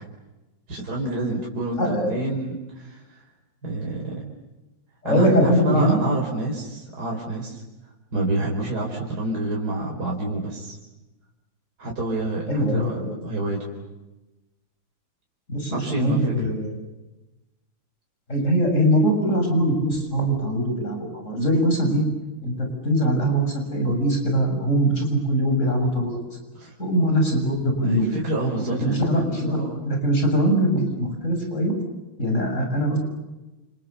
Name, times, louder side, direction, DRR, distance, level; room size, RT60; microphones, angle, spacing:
voice 1, 0.7-3.0 3.6-4.3 5.0-7.6 8.1-10.7 11.8-13.0 13.2-13.7 15.7-16.5 26.5-26.7 27.8-29.8, right 2 dB, 50° right, -2 dB, 5.0 m, -28 dB
voice 2, 1.8-2.1 5.0-6.0 12.5-13.1 15.5-16.8 18.3-22.0 22.4-26.3 26.8-28.1 28.7-29.6 29.8-31.7 32.2-33.0, equal, 35° left, 3 dB, 7.2 m, -22 dB
29.5 x 29.0 x 6.9 m, 1.1 s
omnidirectional pair, 2.2 m